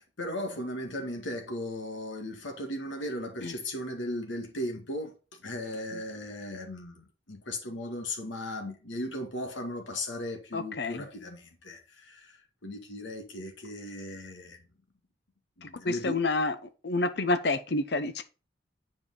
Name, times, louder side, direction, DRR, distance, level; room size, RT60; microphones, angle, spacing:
voice 1, 0.0-14.6 15.6-16.2, left 1 dB, 85° left, 1.9 m, -37 dB
voice 2, 10.5-11.0 15.6-18.2, left 2 dB, 60° left, 0.7 m, -29 dB
7.5 x 5.2 x 3.9 m
head